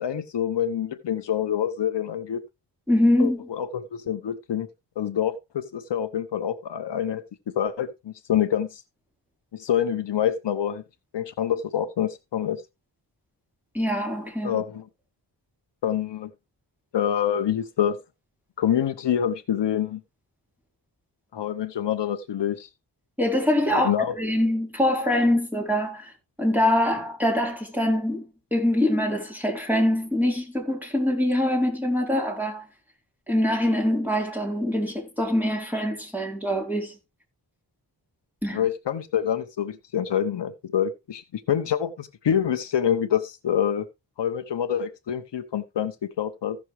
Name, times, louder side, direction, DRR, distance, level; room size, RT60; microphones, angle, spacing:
voice 1, 0.0-2.4 3.2-4.7 5.0-7.2 7.5-8.8 9.5-10.8 11.1-12.6 14.4-14.8 15.8-16.3 16.9-18.0 18.6-20.0 21.3-22.7 23.7-24.2 38.5-43.9 44.2-46.6, left 9 dB, 70° left, 0.9 m, -26 dB
voice 2, 2.9-3.4 13.7-14.6 23.2-26.1 26.4-32.7 33.3-37.0 38.4-38.6, left 1 dB, 5° right, 3.8 m, -24 dB
15.5 x 6.2 x 3.2 m
wide cardioid pair, 95°, 44 cm